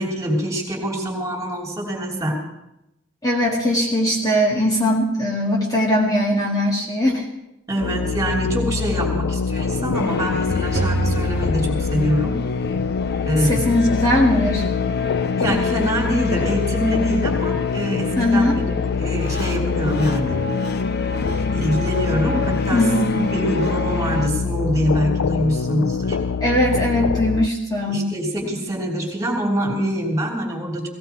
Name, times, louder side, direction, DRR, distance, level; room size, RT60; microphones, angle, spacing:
voice 1, 0.0-2.4 7.7-12.4 13.2-13.6 15.4-20.4 21.2-22.8 23.3-26.2 27.9-30.9, equal, 15° right, 0 dB, 3.3 m, -24 dB
voice 2, 3.2-7.3 13.4-14.6 18.2-18.6 22.7-23.2 26.4-28.1, left 1 dB, 20° left, -2 dB, 2.0 m, -20 dB
sound 1, 7.8-27.5, left 5 dB, 85° left, 0.5 m, -24 dB
sound 2, 9.9-24.3, left 5 dB, 55° left, 0.9 m, -29 dB
sound 3, 10.8-12.7, right 3 dB, 55° right, 0.6 m, -27 dB
17.5 x 17.0 x 4.6 m, 0.88 s
head